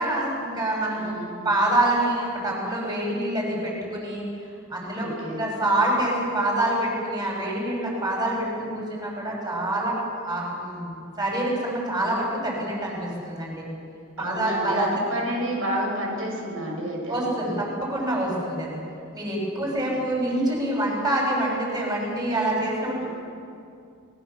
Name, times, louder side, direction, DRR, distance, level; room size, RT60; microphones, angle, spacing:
voice 1, 0.0-1.1 1.4-4.2 4.7-5.1 5.4-10.0 10.2-13.6 14.2-15.0 17.1-18.8 19.1-23.1, right 1 dB, 20° right, -2 dB, 6.7 m, -26 dB
voice 2, 1.0-1.4 4.9-5.4 14.2-17.6 19.5-20.0 23.0-23.1, equal, 90° right, -1 dB, 6.7 m, -30 dB
28.0 x 20.5 x 7.1 m, 2.5 s
head